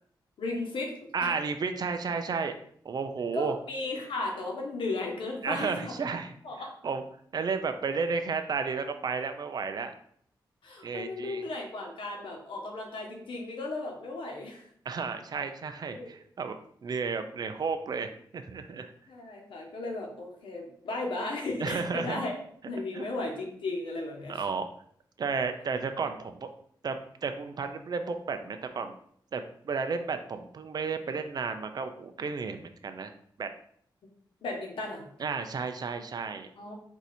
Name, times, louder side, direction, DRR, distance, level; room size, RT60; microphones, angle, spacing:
voice 1, 0.4-0.9 1.2-1.4 3.3-6.1 6.4-6.7 10.6-14.7 15.9-16.1 19.1-22.3 22.6-24.4 34.4-35.0 36.6-36.7, left 2 dB, 85° left, 1 dB, 1.1 m, -35 dB
voice 2, 1.1-2.5 2.8-3.5 5.4-6.3 6.8-7.0 7.3-9.9 10.8-11.4 14.9-16.6 16.8-18.9 21.6-22.2 22.9-23.0 24.3-24.7 25.2-26.5 26.8-29.0 29.3-33.1 33.4-33.5 35.2-36.5, right 5 dB, 50° right, 7 dB, 0.5 m, -32 dB
4.6 x 2.7 x 4.2 m, 0.65 s
wide cardioid pair, 105°, 8 cm